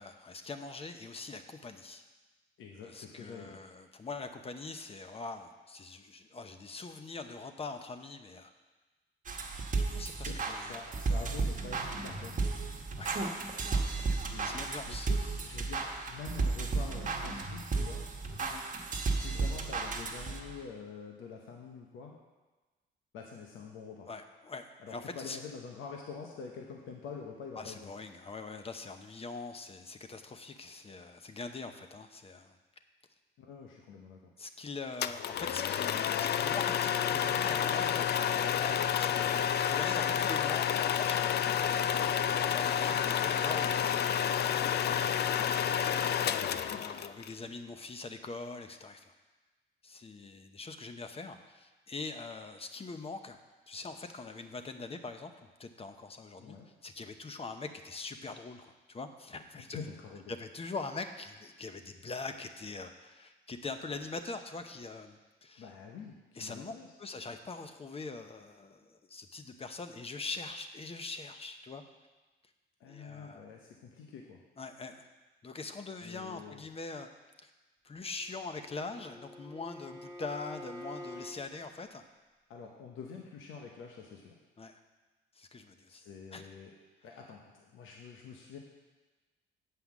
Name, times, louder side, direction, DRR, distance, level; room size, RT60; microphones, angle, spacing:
voice 1, 0.0-2.0 2.8-8.5 9.7-10.7 13.0-13.2 14.4-15.1 18.4-18.7 24.1-25.4 27.6-32.6 34.4-41.3 42.5-45.6 46.5-49.1 49.8-53.4 53.7-55.3 55.6-56.6 56.8-59.8 60.3-65.7 66.3-71.8 72.9-73.5 74.6-75.1 75.4-77.1 77.4-77.5 77.8-82.0 84.6-84.8 85.3-86.0 86.3-86.4, left 3 dB, 30° left, 7 dB, 0.9 m, -43 dB
voice 2, 2.6-3.7 10.2-12.4 14.2-18.0 19.1-22.1 23.1-24.1 24.8-27.9 33.4-34.3 46.2-46.9 56.4-56.7 59.7-60.3 65.6-66.9 72.8-74.4 76.0-76.6 82.5-84.3 85.9-86.7 87.0-88.6, left 5 dB, 85° left, 1 dB, 1.0 m, -46 dB
sound 1, 9.3-20.6, right 3 dB, 40° right, 1.2 m, -34 dB
sound 2, 35.0-47.3, left 9 dB, 55° left, 0.4 m, -30 dB
Bowed string instrument, 78.2-81.4, left 1 dB, 15° right, 1.4 m, -47 dB
8.1 x 5.7 x 7.2 m, 1.2 s
cardioid pair, 90°, 20 cm